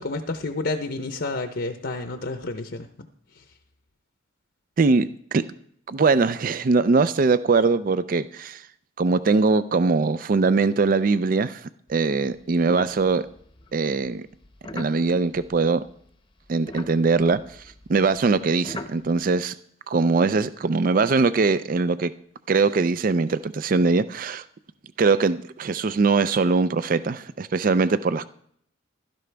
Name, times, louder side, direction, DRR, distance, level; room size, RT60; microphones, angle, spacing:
voice 1, 0.0-2.9, left 2 dB, 55° left, 0.7 m, -30 dB
voice 2, 4.8-5.4 5.9-8.6 9.0-11.6 11.9-13.3 13.7-14.2 14.7-15.8 16.5-17.4 17.9-19.5 19.9-22.1 22.5-24.4 25.0-28.3, right 4 dB, 45° right, 0.4 m, -21 dB
sound 1, 11.9-16.1 16.4-19.3, left 2 dB, 25° left, 0.8 m, -42 dB
16.0 x 12.5 x 3.4 m
head